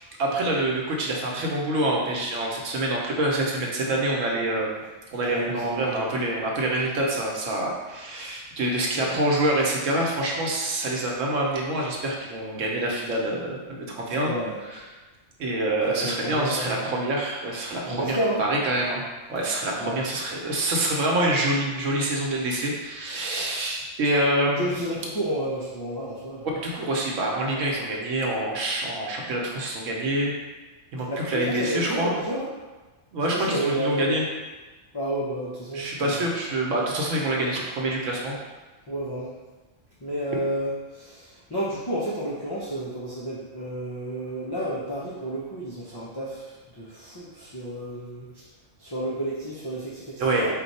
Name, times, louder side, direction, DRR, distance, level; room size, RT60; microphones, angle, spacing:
voice 1, 0.2-4.8 5.1-14.3 14.7-14.8 15.4-19.0 19.3-24.8 26.6-30.3 30.9-32.1 33.1-34.3 35.7-38.4 50.2-50.5, right 1 dB, 80° right, -2 dB, 1.2 m, -26 dB
voice 2, 5.3-6.0 14.2-14.6 15.9-16.8 17.8-18.4 19.8-20.0 24.6-26.5 31.1-32.5 33.3-34.1 34.9-36.2 38.9-39.3 40.0-48.4 48.8-50.5, right 1 dB, 30° left, -7 dB, 0.4 m, -31 dB
4.3 x 2.3 x 4.1 m, 1.2 s
omnidirectional pair, 1.3 m